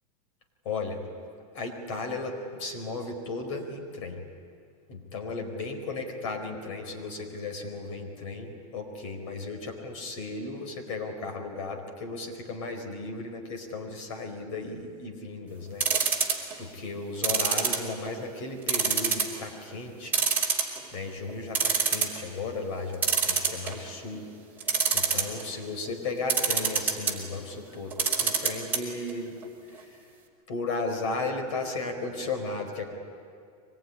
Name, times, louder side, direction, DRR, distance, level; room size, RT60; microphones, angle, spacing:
voice 1, 0.6-1.0 1.5-4.2 4.9-15.9 16.6-20.2 20.9-24.3 24.9-29.3 30.5-32.9, left 3 dB, 55° left, 4 dB, 4.6 m, -35 dB
sound 1, 15.8-16.5 17.2-18.2 18.7-19.4 19.7-19.8 20.1-20.9 21.3-21.4 21.5-22.2 23.0-23.9 24.6-25.4 26.3-27.1 27.9-28.8 29.1-29.2 29.4-29.5, right 6 dB, 10° right, 3.0 m, -25 dB
24.5 x 21.0 x 9.9 m, 2.3 s
supercardioid pair, 180°, 20 cm